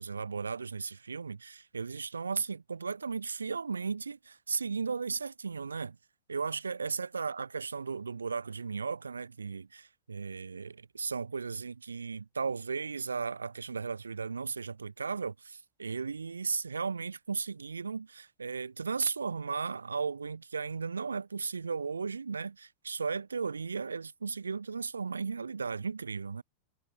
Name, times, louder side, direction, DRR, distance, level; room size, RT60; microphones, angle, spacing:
voice 1, 0.0-6.0 6.3-26.4, right 5 dB, 75° right, 5.1 m, -35 dB
figure-of-eight pair, 90°, 0 cm